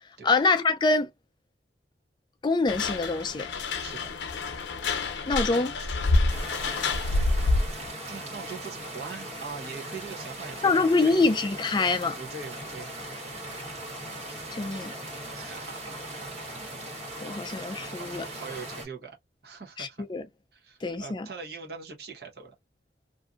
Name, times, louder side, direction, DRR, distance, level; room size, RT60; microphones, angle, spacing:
voice 1, 0.2-1.1 2.4-3.5 5.3-5.7 10.6-12.2 14.5-15.0 17.2-18.2 19.8-20.2 20.8-21.3, left 3 dB, 25° left, 0.3 m, -25 dB
sound 1, 2.7-7.9, left 2 dB, 85° left, 0.6 m, -27 dB
voice 2, 5.5-5.9 6.7-6.9 8.1-11.1 12.2-12.9 15.3-16.7 18.1-19.2 19.4-20.1 20.5-22.5, right 4 dB, 60° right, 0.9 m, -42 dB
sound 2, 6.3-18.9, right 1 dB, 40° right, 1.3 m, -39 dB
2.6 x 2.5 x 2.4 m
head